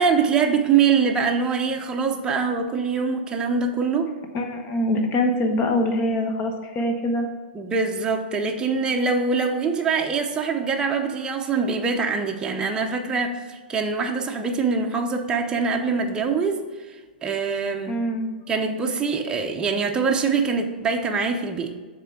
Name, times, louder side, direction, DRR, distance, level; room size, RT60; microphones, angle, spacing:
voice 1, 0.0-4.1 7.5-16.6 17.2-18.0 18.5-21.7, right 5 dB, 15° right, 2 dB, 0.7 m, -23 dB
voice 2, 4.3-7.3 17.9-18.3, left 1 dB, 35° left, 4 dB, 1.1 m, -24 dB
6.7 x 3.7 x 6.0 m, 1.4 s
hypercardioid pair, 120°, 5 cm